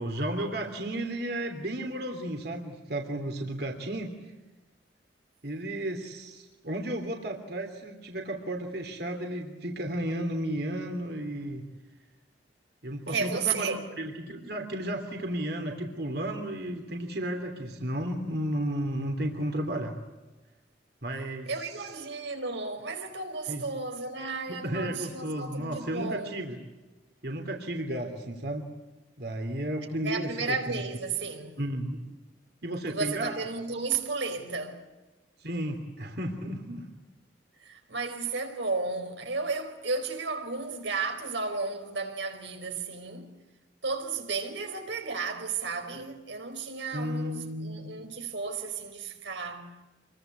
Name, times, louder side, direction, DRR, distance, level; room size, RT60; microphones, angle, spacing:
voice 1, 0.0-4.1 5.4-11.6 12.8-20.0 21.0-21.5 21.8-21.9 23.5-23.6 24.5-26.6 27.2-28.7 29.2-30.8 31.6-32.1 32.6-33.3 35.4-36.9 46.9-47.9, right 1 dB, 60° right, 3.1 m, -33 dB
voice 2, 13.1-13.8 21.5-26.4 30.0-31.6 32.9-34.9 37.6-43.3 43.8-49.8, right 4 dB, 85° right, 4.6 m, -33 dB
27.5 x 23.0 x 8.2 m
head